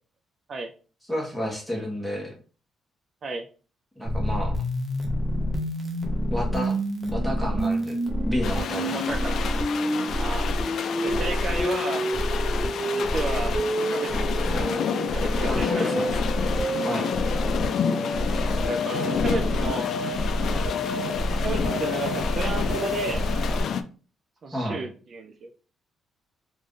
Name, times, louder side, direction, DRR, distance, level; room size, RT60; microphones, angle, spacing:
voice 1, 1.1-2.3 4.0-4.6 6.3-6.8 7.1-9.0 11.1-11.2 14.5-14.7 15.5-16.3 16.8-17.1 24.5-24.9, equal, ahead, -1 dB, 1.4 m, -31 dB
sound 1, 4.0-23.6, equal, 25° right, 1.0 m, -27 dB
sound 2, 8.4-23.8, left 7 dB, 65° left, 0.4 m, -30 dB
voice 2, 8.9-9.5 10.2-10.5 11.0-12.1 12.8-13.6 13.9-14.3 15.1-16.0 18.7-19.9 20.5-20.7 21.4-23.2 24.4-25.5, right 3 dB, 50° right, 5 dB, 0.4 m, -32 dB
3.1 x 2.6 x 3.6 m, 0.38 s
cardioid pair, 90°, 0 cm